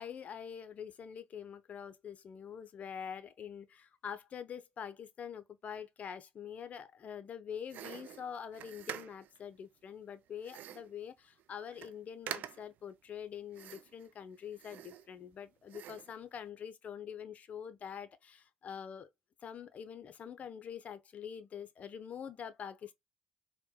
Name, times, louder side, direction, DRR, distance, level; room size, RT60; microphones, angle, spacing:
voice 1, 0.0-19.1 19.4-22.9, left 8 dB, 50° left, 0.6 m, -45 dB
sound 1, 7.7-9.4 10.4-11.0 11.4-11.5 11.7-12.0 12.3-12.8 13.5-14.1 14.5-15.3 15.7-16.2, right 11 dB, 70° right, 0.3 m, -46 dB
4.4 x 2.1 x 2.2 m
supercardioid pair, 65°, 3 cm